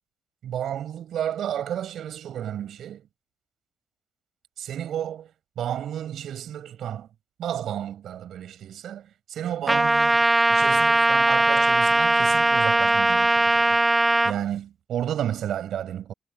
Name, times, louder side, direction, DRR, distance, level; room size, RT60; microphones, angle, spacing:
voice 1, 0.4-3.1 4.6-5.3 5.6-7.1 7.4-13.8 14.2-16.1, right 10 dB, 70° right, 7.7 m, -32 dB
Trumpet, 9.7-14.3, right 2 dB, 15° right, 0.5 m, -20 dB
cardioid pair, 90°, 0 cm